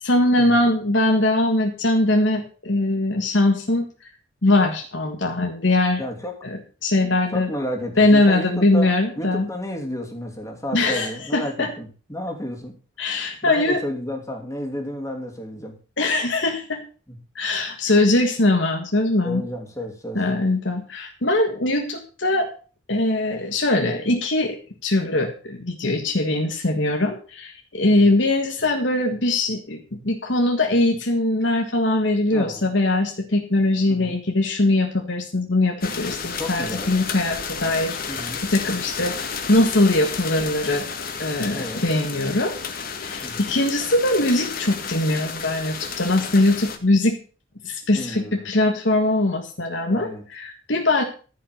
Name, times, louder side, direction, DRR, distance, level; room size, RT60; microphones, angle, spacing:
voice 1, 0.0-3.9 4.4-6.0 6.4-7.5 8.0-9.5 10.7-11.7 13.0-13.8 16.0-16.8 17.4-19.4 20.2-22.5 22.9-24.6 24.8-39.2 39.5-40.9 41.2-42.5 43.0-47.2 47.6-51.0, left 2 dB, 65° left, 3 dB, 1.7 m, -21 dB
voice 2, 6.0-6.3 7.3-12.8 13.4-15.8 17.1-17.2 19.2-20.2 27.8-28.1 32.3-32.7 33.9-34.2 36.4-36.9 38.1-38.4 41.5-41.8 43.2-43.5 47.9-48.4 49.9-50.2, equal, 15° left, 2 dB, 2.7 m, -32 dB
sound 1, 35.8-46.8, left 6 dB, 45° left, 1.7 m, -32 dB
14.0 x 5.8 x 6.5 m, 0.37 s
head